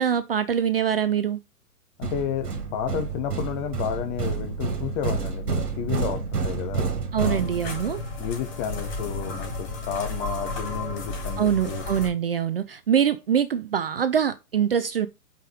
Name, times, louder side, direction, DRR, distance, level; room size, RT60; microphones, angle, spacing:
voice 1, 0.0-1.4 7.1-8.0 11.4-15.1, right 8 dB, 40° right, 0.5 m, -24 dB
voice 2, 2.0-6.9 7.2-7.5 8.2-11.8, left 8 dB, 20° left, 1.0 m, -31 dB
sound 1, 2.0-8.0, right 5 dB, 75° right, 1.8 m, -29 dB
sound 2, 7.2-12.1, left 2 dB, 35° left, 3.6 m, -33 dB
5.4 x 5.1 x 4.9 m
figure-of-eight pair, 120°, 47 cm